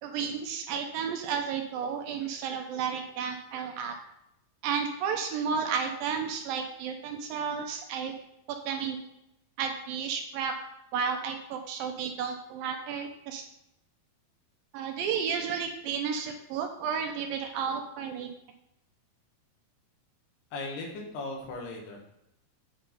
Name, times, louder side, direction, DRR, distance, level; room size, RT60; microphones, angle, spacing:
voice 1, 0.0-4.0 4.6-8.1 8.7-9.0 9.6-10.5 10.9-13.4 14.7-18.3, right 6 dB, 80° right, 4 dB, 2.2 m, -32 dB
voice 2, 20.5-22.0, left 2 dB, 85° left, 0 dB, 3.5 m, -37 dB
8.7 x 4.1 x 5.1 m, 0.82 s
omnidirectional pair, 4.5 m